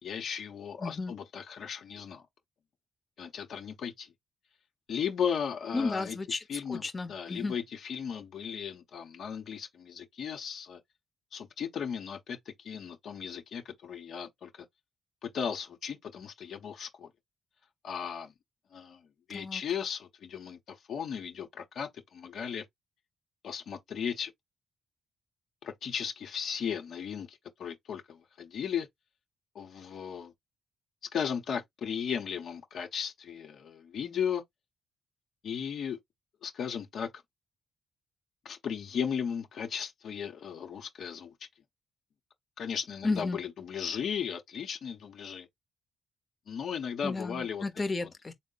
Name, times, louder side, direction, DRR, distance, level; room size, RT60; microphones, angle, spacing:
voice 1, 0.0-2.2 3.2-4.1 4.9-6.2 6.5-6.8 7.1-10.8 11.3-14.7 15.2-17.1 17.8-18.3 18.7-19.0 19.3-22.7 23.4-24.3 25.6-28.9 29.5-30.3 31.1-34.4 35.4-36.0 36.4-37.1 38.4-41.3 42.6-45.5 46.5-47.6 48.0-48.1, left 7 dB, 70° left, 0.8 m, -36 dB
voice 2, 0.8-1.1 5.7-7.5 19.3-19.6 43.0-43.4 47.0-48.3, left 3 dB, 30° left, 0.8 m, -33 dB
3.6 x 2.0 x 3.9 m
cardioid pair, 70°, 0 cm